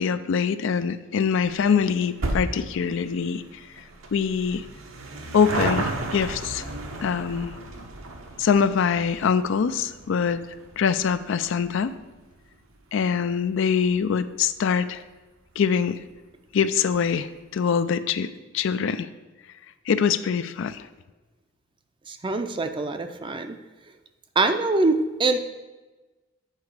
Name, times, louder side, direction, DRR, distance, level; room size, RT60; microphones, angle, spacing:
voice 1, 0.0-3.4 3.8-3.9 4.1-4.6 5.3-6.6 7.0-7.5 8.4-10.4 10.8-11.9 12.9-15.0 15.6-16.0 16.5-19.1 19.9-20.8, left 6 dB, 65° left, 12 dB, 0.4 m, -24 dB
sound 1, 1.4-14.2 14.5-14.6 15.5-15.6 15.8-15.9 16.1-16.2, right 2 dB, 80° right, 1.0 m, -35 dB
voice 2, 22.1-23.6 24.4-25.4, right 3 dB, 25° right, 7 dB, 0.5 m, -24 dB
8.1 x 4.7 x 4.8 m, 1.2 s
head